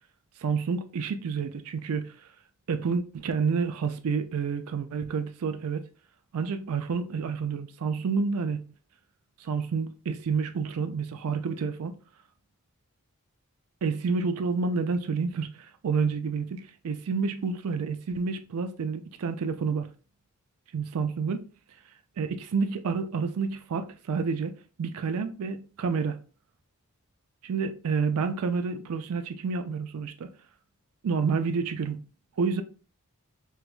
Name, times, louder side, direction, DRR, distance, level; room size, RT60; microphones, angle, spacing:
voice 1, 0.4-2.1 2.7-5.8 6.3-8.6 9.4-11.9 13.8-19.9 20.7-21.4 22.2-24.5 24.8-26.2 27.4-30.3 31.0-32.0 32.4-32.6, right 5 dB, 85° right, 0.4 m, -29 dB
4.5 x 2.2 x 2.4 m
head